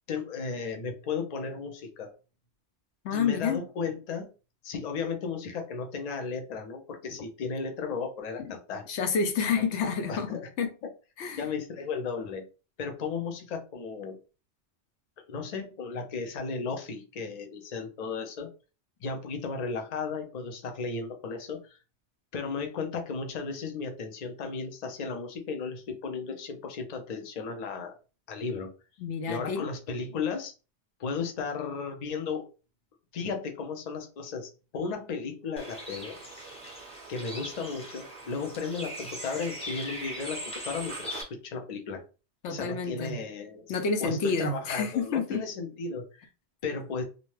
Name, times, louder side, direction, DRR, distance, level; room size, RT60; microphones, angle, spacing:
voice 1, 0.1-2.1 3.1-4.3 4.6-8.8 9.5-9.6 10.1-10.5 11.4-12.4 12.8-14.2 15.3-18.5 19.0-21.8 22.3-27.9 28.3-28.7 29.3-30.5 31.0-32.5 33.1-36.2 37.1-42.0 42.5-43.6 44.0-46.3 46.6-47.0, left 5 dB, 50° left, 0.5 m, -35 dB
voice 2, 3.0-3.6 8.4-8.5 8.9-10.7 11.2-11.5 29.0-29.7 42.4-43.2 43.7-45.4, left 5 dB, 80° left, 0.9 m, -29 dB
Bird, 35.6-41.2, right 1 dB, 5° left, 0.8 m, -40 dB
2.6 x 2.1 x 3.1 m
omnidirectional pair, 1.2 m